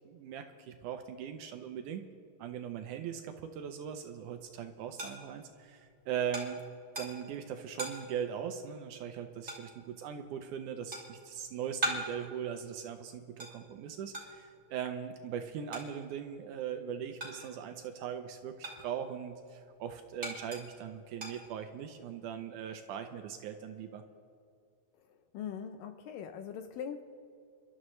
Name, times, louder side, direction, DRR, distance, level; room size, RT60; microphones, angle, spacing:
voice 1, 0.1-2.0 2.4-6.6 7.0-24.0, right 8 dB, 80° right, 7 dB, 1.8 m, -40 dB
sound 1, 4.0-17.8 18.1-22.0, right 1 dB, 25° right, 2.5 m, -43 dB
voice 2, 25.3-27.0, left 8 dB, 80° left, 8 dB, 2.1 m, -41 dB
28.5 x 12.5 x 3.2 m, 2.4 s
omnidirectional pair, 4.3 m